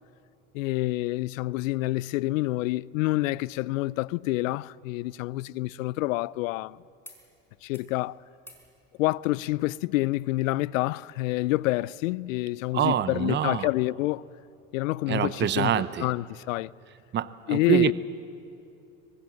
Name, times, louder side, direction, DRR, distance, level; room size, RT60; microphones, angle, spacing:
voice 1, 0.5-6.8 7.6-8.2 9.0-14.2 14.7-16.7 17.5-17.9, left 18 dB, 75° left, 0.6 m, -28 dB
sound 1, 7.0-7.2 7.5-7.9 8.4-8.7 10.0-10.1, left 1 dB, 5° left, 4.9 m, -54 dB
voice 2, 12.7-13.7 15.1-16.1 17.1-17.9, right 10 dB, 25° right, 0.8 m, -25 dB
24.0 x 20.5 x 7.8 m
hypercardioid pair, 90°, 40 cm